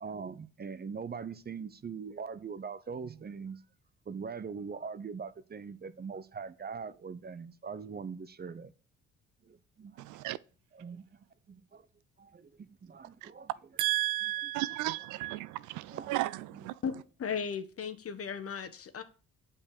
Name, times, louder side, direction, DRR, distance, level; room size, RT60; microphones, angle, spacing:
voice 1, 0.0-3.6 4.1-8.7 9.4-10.1 10.7-11.1 11.5-11.9 12.2-13.8 14.2-14.8 15.2-15.3 15.9-16.2 16.5-16.7, right 5 dB, 30° right, 0.8 m, -42 dB
voice 2, 13.8-16.7, right 17 dB, 70° right, 0.5 m, -33 dB
voice 3, 17.2-19.0, left 6 dB, 45° left, 1.3 m, -36 dB
8.5 x 5.3 x 6.7 m
hypercardioid pair, 50°, 32 cm